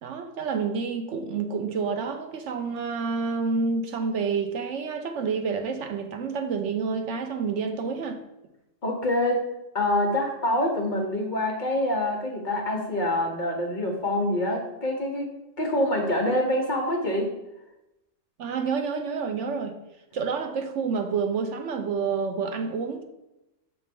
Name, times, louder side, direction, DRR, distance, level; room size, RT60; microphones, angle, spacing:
voice 1, 0.0-8.2 18.4-19.8 20.1-23.0, right 5 dB, 70° right, 0.9 m, -28 dB
voice 2, 8.8-9.4 9.7-15.3 15.6-17.3, left 1 dB, 45° left, 0.9 m, -26 dB
6.0 x 3.2 x 5.1 m
omnidirectional pair, 1.3 m